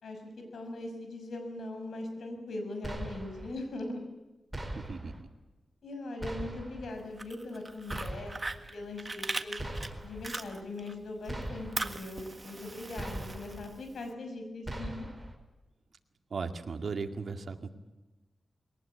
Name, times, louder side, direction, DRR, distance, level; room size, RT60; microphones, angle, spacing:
voice 1, 0.0-4.0 5.8-9.7 10.0-15.0, left 2 dB, 80° left, 5 dB, 6.2 m, -40 dB
sound 1, 2.8-3.5 4.5-5.2 6.2-6.9 7.9-8.6 9.6-10.3 11.3-12.0 13.0-13.7 14.6-15.3, right 1 dB, 10° right, 5.1 m, -40 dB
voice 2, 4.7-5.3 16.3-17.7, right 4 dB, 65° right, 5 dB, 2.2 m, -37 dB
Fire, 7.0-10.9 11.2-14.0, right 2 dB, 30° right, 1.6 m, -39 dB
22.0 x 19.0 x 8.5 m, 1.1 s
cardioid pair, 75°, 0 cm